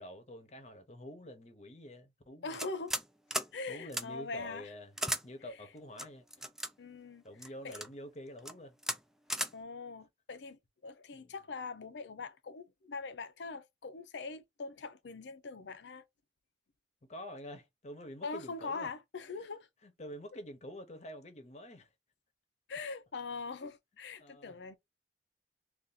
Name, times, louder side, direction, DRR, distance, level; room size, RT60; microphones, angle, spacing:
voice 1, 0.0-2.6 3.7-4.9 5.2-6.5 7.2-8.8 11.1-11.3 17.0-18.9 19.8-21.9 24.2-24.5, left 1 dB, 40° left, 0.8 m, -47 dB
voice 2, 2.4-3.0 3.5-4.7 6.8-7.2 7.6-7.8 9.5-16.0 18.2-19.7 22.7-24.7, left 4 dB, 85° left, 0.6 m, -42 dB
sound 1, 2.5-3.1 3.3-3.5 3.9-4.0 5.0-5.2 6.0-6.7 7.4-7.9 8.4-8.5 8.8-9.0 9.3-9.5, right 1 dB, 5° right, 0.3 m, -35 dB
2.6 x 2.5 x 3.8 m
head